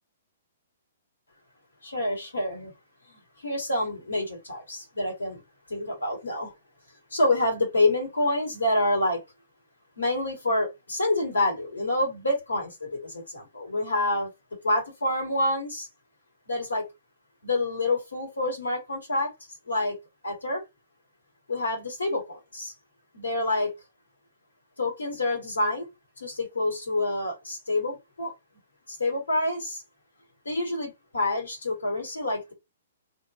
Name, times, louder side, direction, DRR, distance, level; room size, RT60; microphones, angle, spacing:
voice 1, 1.8-2.7 3.4-5.4 5.7-6.5 7.1-9.2 10.0-14.3 14.6-15.9 16.5-16.9 17.4-19.3 19.7-20.0 20.2-20.6 21.5-22.7 23.1-23.7 24.8-25.9 26.2-28.3 28.9-29.8 30.4-32.5, left 2 dB, 85° left, 1.4 m, -27 dB
2.4 x 2.4 x 2.6 m
figure-of-eight pair, 120°, 0 cm